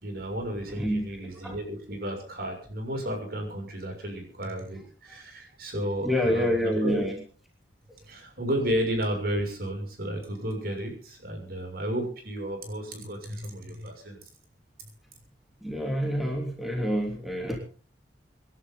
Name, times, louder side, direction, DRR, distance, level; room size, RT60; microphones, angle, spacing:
voice 1, 0.0-7.1 8.1-14.2, equal, 55° right, 2 dB, 6.6 m, -32 dB
voice 2, 0.8-1.6 6.0-7.2 15.6-17.6, equal, ahead, 0 dB, 3.2 m, -27 dB
27.0 x 11.5 x 3.9 m, 0.40 s
head